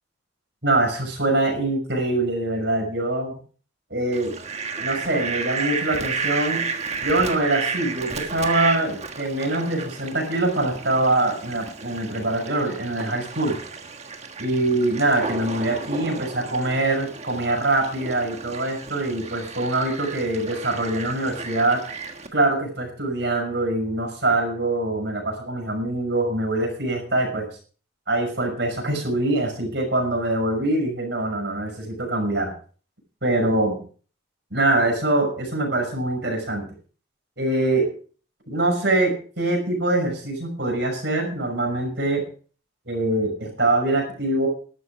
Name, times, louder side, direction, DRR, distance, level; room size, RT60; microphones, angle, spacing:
voice 1, 0.6-3.4 3.9-4.3 4.8-6.6 7.0-13.6 14.4-21.8 22.3-27.5 28.1-32.5 33.2-33.8 34.5-36.7 37.4-37.9 38.5-42.2 42.9-44.5, right 2 dB, 55° right, 2 dB, 6.0 m, -24 dB
Fowl, 4.1-22.3, right 5 dB, 35° right, 1.5 m, -32 dB
13.0 x 12.0 x 4.9 m, 0.42 s
head